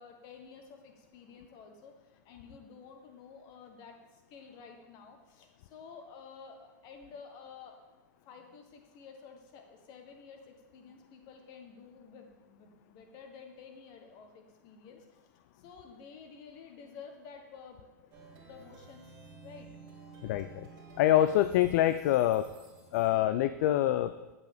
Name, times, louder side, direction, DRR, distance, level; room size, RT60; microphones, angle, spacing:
voice 1, 0.0-1.9 2.2-7.8 8.3-18.0 18.4-19.1 19.4-19.7, left 5 dB, 45° left, 4 dB, 1.4 m, -51 dB
Plucked string instrument, 18.1-23.4, right 4 dB, 40° right, 2.2 m, -53 dB
voice 2, 20.2-20.7 21.0-22.5 22.9-24.1, left 13 dB, 60° left, 11 dB, 0.3 m, -25 dB
8.0 x 8.0 x 3.5 m, 1.1 s
hypercardioid pair, 120°, 10 cm